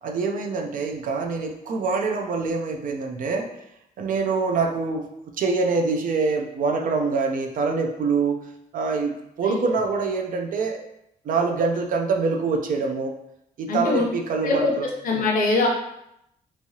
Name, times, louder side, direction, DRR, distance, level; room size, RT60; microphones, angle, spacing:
voice 1, 0.0-3.5 4.0-8.4 8.7-10.8 11.2-13.1 13.6-14.9, right 4 dB, 60° right, 2 dB, 0.4 m, -25 dB
voice 2, 13.7-14.1 14.4-15.7, left 3 dB, 65° left, 0 dB, 0.8 m, -22 dB
3.5 x 3.1 x 2.7 m, 0.80 s
wide cardioid pair, 160°, 15 cm